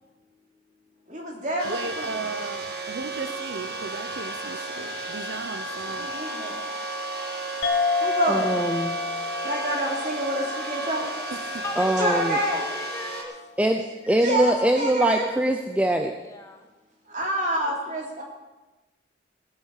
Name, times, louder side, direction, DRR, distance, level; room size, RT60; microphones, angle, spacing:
voice 1, 1.1-2.2 5.8-6.6 8.0-8.5 9.4-11.1 12.0-12.6 14.2-15.3 17.1-18.2, right 1 dB, 40° right, 3.3 m, -28 dB
sound 1, 1.6-13.2, right 2 dB, 55° right, 1.9 m, -33 dB
voice 2, 1.6-6.1 11.3-11.6, right 4 dB, 75° right, 0.7 m, -36 dB
sound 2, 7.6-12.5, left 4 dB, 70° left, 1.3 m, -30 dB
voice 3, 8.3-9.0 11.8-12.4 13.6-16.1, right 1 dB, 5° right, 0.5 m, -23 dB
voice 4, 11.6-13.4 16.3-16.6 17.6-17.7 18.2-18.3, left 2 dB, 15° left, 1.2 m, -36 dB
17.0 x 8.2 x 6.6 m
head